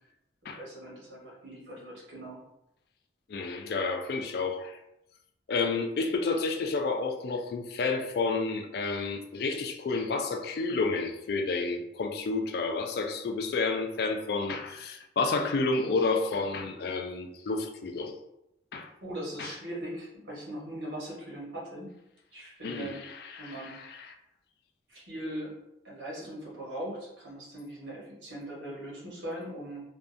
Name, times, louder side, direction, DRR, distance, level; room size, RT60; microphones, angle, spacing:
voice 1, 0.4-2.4 19.0-21.9 22.3-23.0 23.4-23.8 24.9-25.5 25.8-29.8, right 1 dB, 80° right, -4 dB, 1.0 m, -40 dB
voice 2, 3.3-4.8 5.5-18.1 18.7-18.9 19.4-19.5 22.6-24.1, left 3 dB, 55° left, 5 dB, 0.3 m, -30 dB
2.6 x 2.3 x 2.4 m, 0.83 s
head